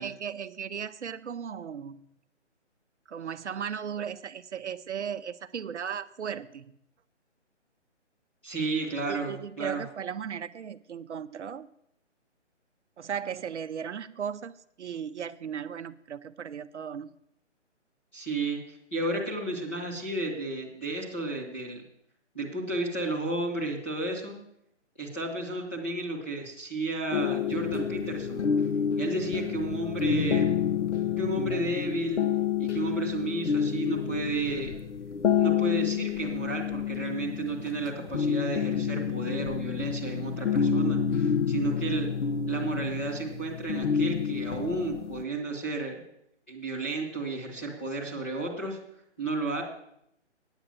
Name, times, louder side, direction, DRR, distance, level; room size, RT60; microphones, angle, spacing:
voice 1, 0.0-2.0 3.1-6.8 9.1-11.7 13.0-17.1, right 8 dB, 70° right, 11 dB, 0.6 m, -36 dB
voice 2, 8.4-9.8 18.1-18.6 18.9-21.8 22.3-24.3 25.0-28.5 29.0-30.5 31.2-32.2 32.6-34.7 35.4-42.1 42.5-46.0 46.5-48.8 49.2-49.6, right 2 dB, 10° left, -5 dB, 1.1 m, -32 dB
sound 1, 27.1-45.2, left 7 dB, 75° left, 0.9 m, -29 dB
9.0 x 7.9 x 7.4 m, 0.75 s
hypercardioid pair, 180°, 36 cm